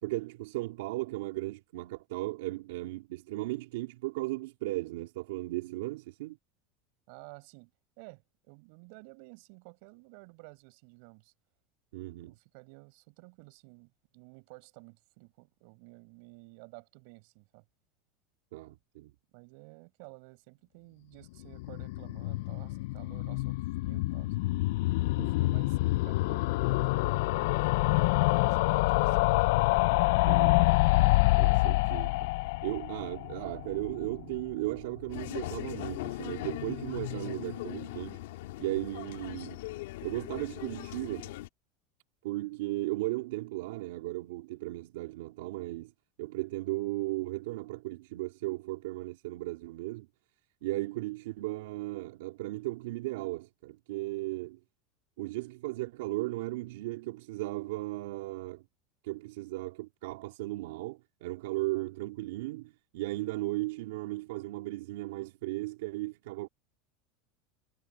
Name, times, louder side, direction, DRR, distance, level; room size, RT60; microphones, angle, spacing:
voice 1, 0.0-6.4 11.9-12.4 18.5-19.1 25.2-25.3 30.3-30.7 31.4-32.3 32.6-38.2 38.6-39.6 40.0-41.4 42.2-45.9 46.2-50.1 50.6-54.6 55.2-58.6 59.0-66.5, right 19 dB, 80° right, 3.2 m, -36 dB
voice 2, 7.1-7.7 8.0-11.3 12.2-17.6 19.3-24.6 25.3-29.3 54.3-54.5, right 30 dB, 55° right, 6.3 m, -53 dB
sound 1, 21.4-34.5 34.8-34.9 35.1-35.2 35.4-35.5, left 21 dB, 65° left, 0.3 m, -27 dB
sound 2, 35.1-41.5, left 16 dB, 80° left, 2.4 m, -39 dB
supercardioid pair, 170°, 0 cm